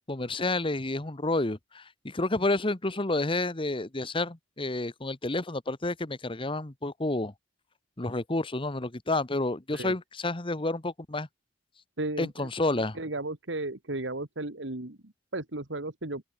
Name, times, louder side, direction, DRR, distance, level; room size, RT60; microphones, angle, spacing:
voice 1, 0.1-7.3 8.0-11.3 12.2-13.0, left 2 dB, 30° left, 1.3 m, -30 dB
voice 2, 12.0-12.5 13.0-16.2, right 2 dB, 75° right, 2.3 m, -35 dB
open air
head